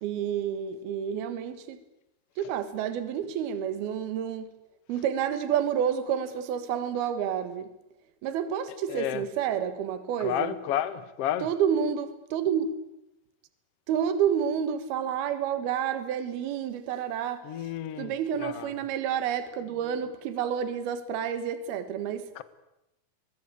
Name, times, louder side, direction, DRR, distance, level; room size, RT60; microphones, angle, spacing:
voice 1, 0.0-1.8 2.4-4.5 4.9-7.7 8.2-10.6 11.4-12.7 13.9-17.7 18.0-22.3, right 8 dB, 75° right, 3.4 m, -29 dB
voice 2, 8.9-9.2 10.2-11.5 17.4-18.1 18.4-18.7 22.4-22.5, left 11 dB, 60° left, 1.6 m, -31 dB
24.0 x 20.0 x 8.5 m
omnidirectional pair, 4.6 m